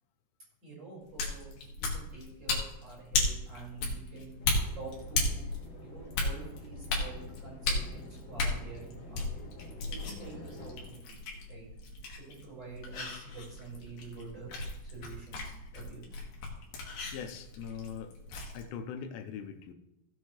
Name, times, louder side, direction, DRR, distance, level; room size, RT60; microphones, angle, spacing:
voice 1, 0.6-4.4 4.7-5.3 5.8-9.2 9.9-11.7 12.2-14.5 14.8-16.2, right 4 dB, 20° right, -6 dB, 4.8 m, -47 dB
sound 1, 1.0-18.6, left 3 dB, 60° left, 2.6 m, -36 dB
sound 2, 4.4-10.9, left 1 dB, 40° left, 1.8 m, -49 dB
voice 2, 17.1-18.2 18.5-19.7, left 7 dB, 85° left, 7 dB, 3.2 m, -41 dB
16.0 x 7.4 x 3.1 m, 0.88 s
omnidirectional pair, 5.8 m